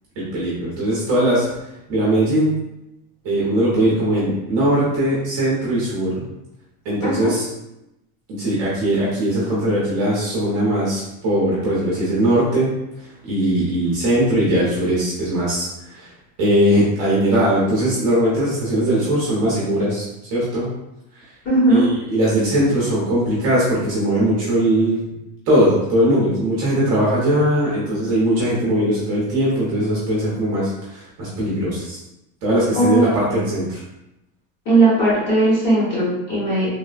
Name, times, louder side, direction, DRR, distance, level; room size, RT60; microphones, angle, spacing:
voice 1, 0.2-1.5 1.9-2.6 3.2-6.2 6.8-7.5 8.3-12.7 13.0-16.1 16.4-20.7 21.7-25.0 25.5-32.0 32.4-33.8, right 1 dB, 30° right, -7 dB, 0.7 m, -20 dB
voice 2, 7.0-7.3 21.4-21.9 32.7-33.1 33.3-33.5 34.6-36.7, right 2 dB, 35° left, -7 dB, 1.0 m, -17 dB
3.2 x 2.1 x 2.4 m, 0.88 s
supercardioid pair, 180°, 48 cm